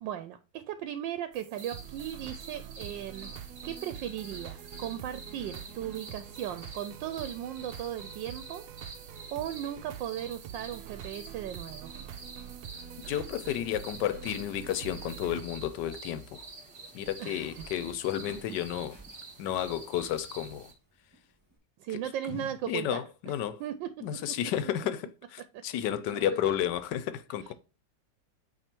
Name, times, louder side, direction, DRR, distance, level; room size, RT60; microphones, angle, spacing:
voice 1, 0.0-3.3 3.6-8.6 9.3-11.9 17.2-17.5 21.8-23.0 23.6-23.9 25.5-25.6 26.1-26.5, right 11 dB, 90° right, 1.3 m, -37 dB
sound 1, 1.3-15.4, right 9 dB, 70° right, 1.1 m, -45 dB
sound 2, 1.5-20.7, right 3 dB, 40° right, 1.2 m, -48 dB
voice 2, 13.1-16.5 16.9-19.0 19.4-20.7 21.9-22.0 22.3-23.6 24.0-27.5, left 11 dB, 75° left, 1.3 m, -32 dB
Walk footsteps, 13.4-21.6, right 1 dB, 10° right, 1.9 m, -58 dB
9.0 x 3.2 x 4.4 m
omnidirectional pair, 2.0 m